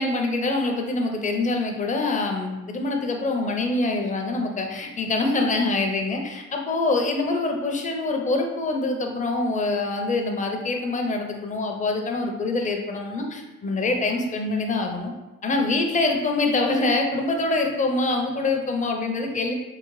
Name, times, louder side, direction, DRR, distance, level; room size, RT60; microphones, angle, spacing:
voice 1, 0.0-15.1 15.4-19.5, left 2 dB, 25° left, 2 dB, 0.5 m, -25 dB
3.8 x 2.0 x 3.1 m, 1.1 s
cardioid pair, 90°, 30 cm